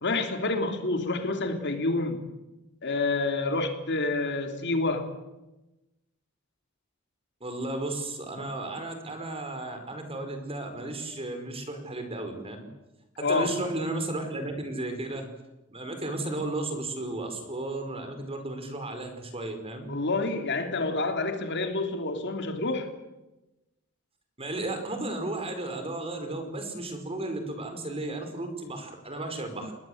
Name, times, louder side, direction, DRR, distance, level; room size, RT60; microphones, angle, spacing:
voice 1, 0.0-2.2 2.8-5.1 13.2-13.5 19.9-22.9, left 3 dB, 55° left, 6 dB, 3.3 m, -28 dB
voice 2, 7.4-12.6 13.2-15.3 15.7-19.9 24.4-29.7, right 2 dB, 30° right, 6 dB, 4.9 m, -34 dB
29.5 x 20.5 x 8.0 m, 1.0 s
head